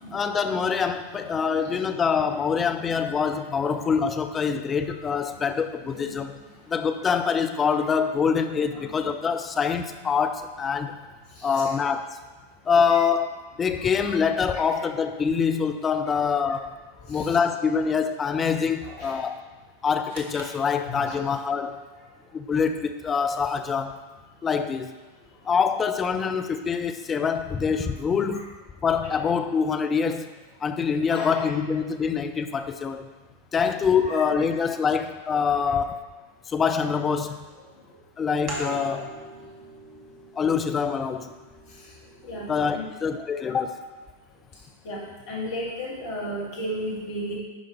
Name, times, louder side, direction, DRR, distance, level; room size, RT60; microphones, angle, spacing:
voice 1, 0.1-6.4 6.7-11.0 11.4-12.2 12.7-16.7 17.1-19.4 19.8-21.8 22.3-24.0 24.4-24.9 25.4-28.5 28.8-30.4 30.6-33.1 33.5-36.1 36.5-37.4 38.2-39.1 40.4-41.3 42.5-43.8, left 6 dB, 20° left, 7 dB, 0.6 m, -25 dB
voice 2, 11.4-11.7 12.9-13.0 17.1-17.3 18.8-19.2 20.8-21.1 31.1-31.4 34.1-34.2 42.2-42.9 43.4-43.5 44.8-45.0 45.3-47.4, equal, 50° left, -5 dB, 2.4 m, -34 dB
sound 1, 20.1-21.5, right 2 dB, 60° right, 1.2 m, -45 dB
sound 2, 38.5-43.7, right 2 dB, 35° right, 1.5 m, -41 dB
11.0 x 5.1 x 3.4 m, 1.3 s
figure-of-eight pair, 90°, 0 cm